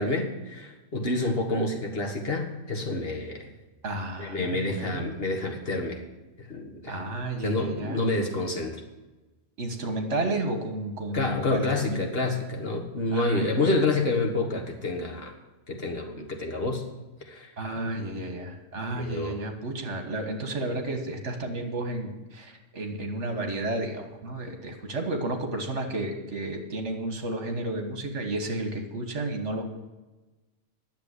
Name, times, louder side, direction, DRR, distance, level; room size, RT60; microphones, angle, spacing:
voice 1, 0.0-3.5 4.2-6.0 6.4-7.0 7.4-8.8 11.1-15.3 15.7-16.8 17.2-17.5 18.9-19.4, left 2 dB, 50° left, 2 dB, 1.7 m, -28 dB
voice 2, 3.8-5.1 6.9-8.3 9.6-12.0 13.1-13.6 17.6-29.7, right 2 dB, 70° right, 4 dB, 1.8 m, -32 dB
10.5 x 7.2 x 8.2 m, 1.1 s
omnidirectional pair, 1.3 m